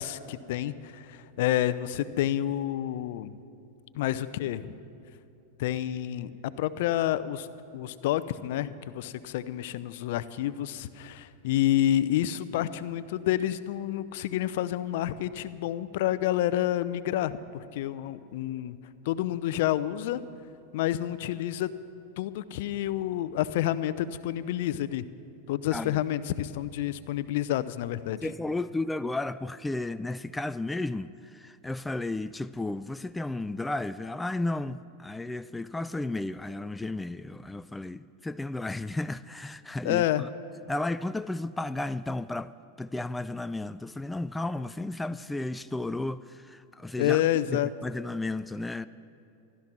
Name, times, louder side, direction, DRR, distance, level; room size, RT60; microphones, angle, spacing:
voice 1, 0.0-3.3 3.9-4.8 5.6-7.5 7.7-18.7 19.1-20.2 20.7-21.7 22.2-25.0 25.5-28.2 39.8-40.2 47.0-47.7, left 13 dB, 65° left, 0.6 m, -29 dB
voice 2, 28.2-40.3 40.7-42.5 42.8-47.2 47.5-48.9, left 2 dB, 10° left, 0.3 m, -33 dB
15.0 x 12.5 x 6.1 m
hypercardioid pair, 110°, 0 cm